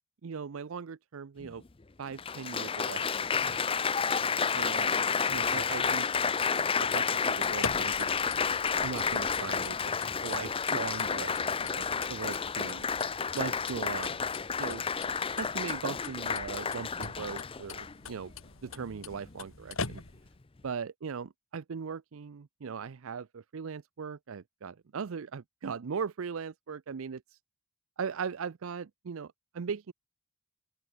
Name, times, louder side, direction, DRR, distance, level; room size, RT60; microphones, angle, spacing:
voice 1, 0.2-1.6 2.0-3.8 4.5-6.1 6.5-8.1 8.8-9.9 10.2-12.9 13.3-14.2 14.6-14.8 15.4-18.3 18.6-20.0 20.6-27.4 28.0-29.9, right 6 dB, 70° right, 0.5 m, -39 dB
Applause, 1.4-1.5 2.2-18.1 18.8-19.2, left 6 dB, 25° left, 0.5 m, -30 dB
sound 1, 7.3-20.4, left 4 dB, 70° left, 2.7 m, -44 dB
open air
head